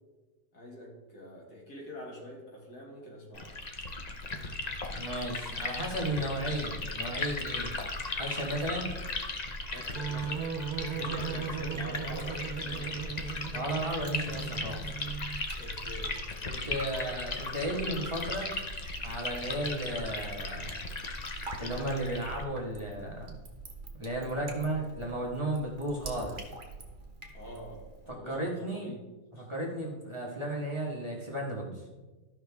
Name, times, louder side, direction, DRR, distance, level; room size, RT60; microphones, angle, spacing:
voice 1, 0.5-3.6 9.7-13.3 15.5-16.2 27.3-29.0 29.4-29.5, equal, 85° left, -2 dB, 2.7 m, -46 dB
Liquid, 3.3-22.4, left 3 dB, 35° left, 0.7 m, -37 dB
voice 2, 4.9-7.7 8.2-8.9 13.5-14.8 16.4-18.5 19.0-20.8 21.6-23.4 24.0-26.4 28.2-28.9 29.4-31.8, right 1 dB, 20° right, -3 dB, 1.4 m, -34 dB
sound 1, 10.0-15.5, right 7 dB, 80° right, 1.2 m, -37 dB
Drip, 11.1-28.1, right 3 dB, 35° right, 1.2 m, -47 dB
14.0 x 5.6 x 3.5 m, 1.2 s
omnidirectional pair, 1.6 m